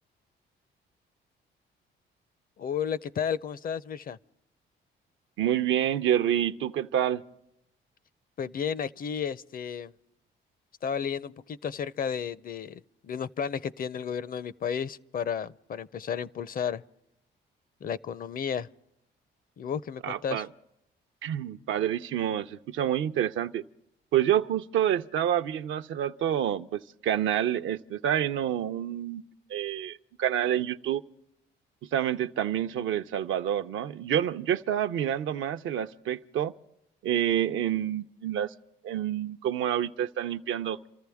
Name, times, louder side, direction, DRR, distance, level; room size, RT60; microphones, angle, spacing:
voice 1, 2.6-4.2 8.4-9.9 10.8-16.8 17.8-18.7 19.6-20.4, left 7 dB, 45° left, 0.5 m, -33 dB
voice 2, 5.4-7.2 20.0-20.5 21.2-23.6 24.1-29.2 29.5-31.0 31.9-36.5 37.0-38.5 38.8-40.9, right 10 dB, 75° right, 0.6 m, -28 dB
28.5 x 14.0 x 3.5 m
cardioid pair, 90°, 20 cm